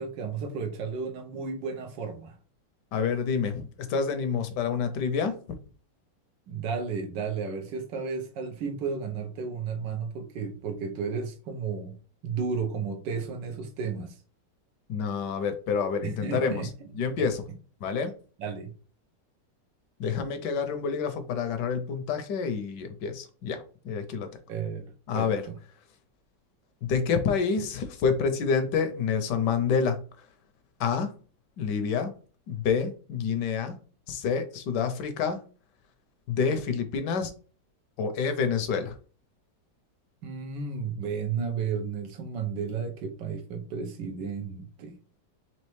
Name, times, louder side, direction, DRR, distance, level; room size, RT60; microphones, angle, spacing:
voice 1, 0.0-2.4 6.5-12.0 12.2-14.2 16.0-16.7 17.2-17.3 18.4-18.7 24.5-25.5 40.2-45.0, right 5 dB, 80° right, 6 dB, 1.4 m, -33 dB
voice 2, 2.9-5.4 14.9-16.7 17.0-17.5 17.8-18.1 20.0-24.3 25.1-25.4 26.8-30.3 30.8-31.1 31.6-32.1 32.5-33.8 34.1-35.4 36.3-37.3 38.0-38.9, left 6 dB, 75° left, 8 dB, 1.2 m, -28 dB
4.2 x 3.0 x 3.1 m, 0.39 s
omnidirectional pair, 2.0 m